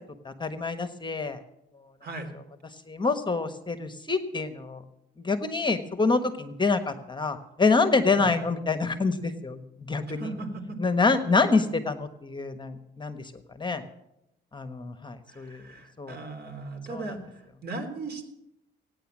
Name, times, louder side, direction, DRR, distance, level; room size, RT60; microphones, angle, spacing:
voice 1, 0.2-1.4 2.9-4.8 5.2-10.3 10.8-13.3 13.6-13.8 14.5-15.6 16.0-16.2 16.9-17.1, left 4 dB, 25° left, 9 dB, 1.3 m, -26 dB
voice 2, 2.0-2.3 8.1-8.4 10.1-10.8 15.3-18.2, right 3 dB, 55° right, 5 dB, 3.5 m, -37 dB
17.0 x 9.7 x 7.3 m, 0.84 s
cardioid pair, 90°, 20 cm